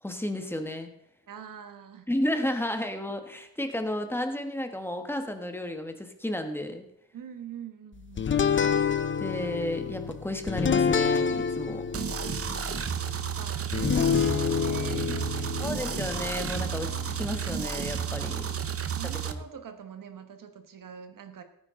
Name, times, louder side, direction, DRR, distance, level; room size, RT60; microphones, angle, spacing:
voice 1, 0.0-0.9 2.1-6.8 9.2-11.8 15.6-18.5 19.2-19.4, left 1 dB, 5° left, 6 dB, 1.3 m, -32 dB
voice 2, 1.3-2.1 7.1-8.3 12.4-13.0 13.3-15.5 18.1-18.5 18.9-21.4, right 8 dB, 60° right, 8 dB, 1.5 m, -44 dB
sound 1, 8.2-18.8, left 6 dB, 35° left, 0.7 m, -29 dB
sound 2, 11.9-19.3, right 8 dB, 40° right, 0.8 m, -32 dB
16.5 x 9.5 x 3.8 m, 0.77 s
wide cardioid pair, 140°, 36 cm